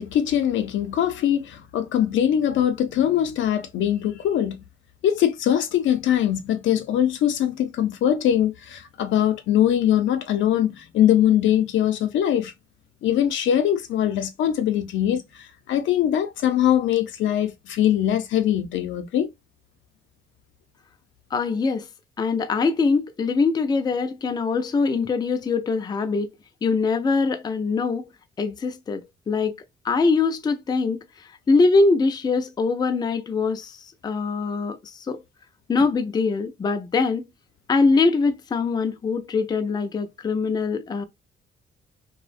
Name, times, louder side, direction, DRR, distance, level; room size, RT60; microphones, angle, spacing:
voice 1, 0.0-4.6 5.0-12.5 13.0-15.2 15.7-19.3, left 10 dB, 75° left, 0.5 m, -22 dB
voice 2, 21.3-21.9 22.2-26.3 26.6-28.1 28.4-29.5 29.8-35.2 35.7-37.3 37.7-41.1, left 4 dB, 20° left, 0.3 m, -23 dB
2.4 x 2.1 x 2.4 m
cardioid pair, 90°, 20 cm